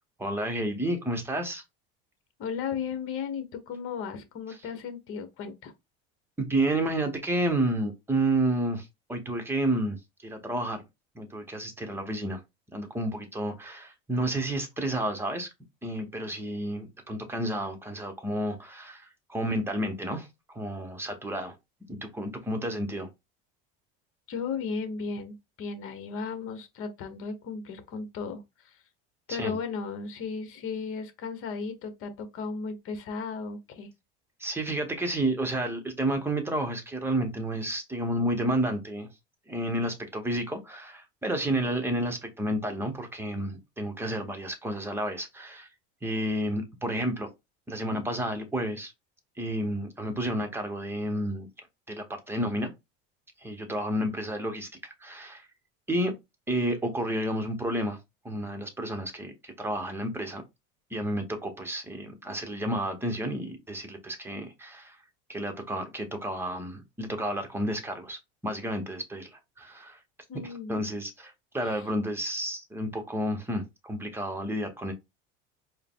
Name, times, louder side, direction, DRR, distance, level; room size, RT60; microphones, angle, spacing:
voice 1, 0.2-1.6 6.4-10.8 11.1-12.4 12.7-15.5 15.8-21.6 21.9-23.1 29.3-29.6 34.4-39.1 39.5-45.7 46.0-47.3 47.7-48.9 49.4-51.5 51.9-52.7 53.4-55.5 55.9-56.1 56.5-58.0 58.2-60.4 60.9-65.0 65.3-70.0 70.4-74.9, right 1 dB, 10° right, 1.0 m, -31 dB
voice 2, 2.4-5.7 24.3-28.8 29.3-33.9 70.3-70.8, left 5 dB, 45° left, 1.2 m, -35 dB
4.5 x 2.2 x 3.7 m
supercardioid pair, 130°, 30 cm